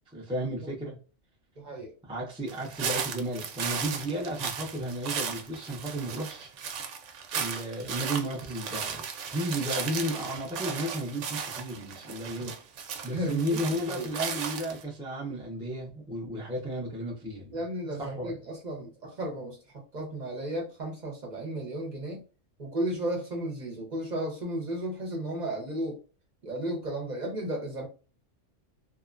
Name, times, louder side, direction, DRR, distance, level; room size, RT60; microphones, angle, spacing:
voice 1, 0.1-1.0 2.0-6.5 7.3-9.0 9.3-12.5 13.0-17.6 18.0-18.4, right 1 dB, 5° right, 0.4 m, -33 dB
voice 2, 1.6-1.9 13.1-13.6 13.9-14.1 17.5-19.6 19.9-22.2 22.6-26.0 26.4-27.9, right 1 dB, 45° right, 0.7 m, -34 dB
sound 1, 2.5-14.8, right 6 dB, 75° right, 0.9 m, -36 dB
2.9 x 2.1 x 2.4 m
omnidirectional pair, 1.3 m